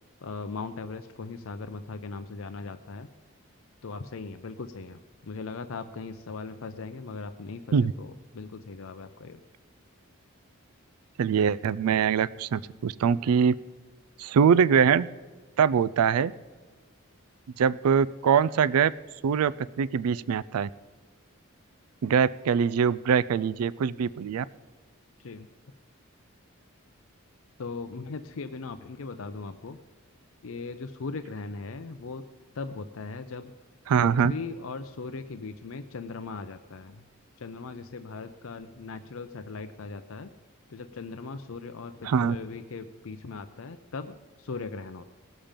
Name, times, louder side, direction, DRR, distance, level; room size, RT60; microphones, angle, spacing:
voice 1, 0.2-3.1 3.8-9.4 25.2-25.5 27.6-29.8 30.4-32.3 32.5-33.5 34.0-37.1 37.4-40.3 40.7-45.0, left 4 dB, 70° left, 9 dB, 0.6 m, -39 dB
voice 2, 11.2-13.6 14.2-15.1 15.6-16.3 17.6-18.9 19.2-20.7 22.0-24.5 33.9-34.3 42.0-42.4, right 7 dB, 90° right, 19 dB, 0.4 m, -23 dB
19.0 x 7.3 x 5.1 m, 1.4 s
head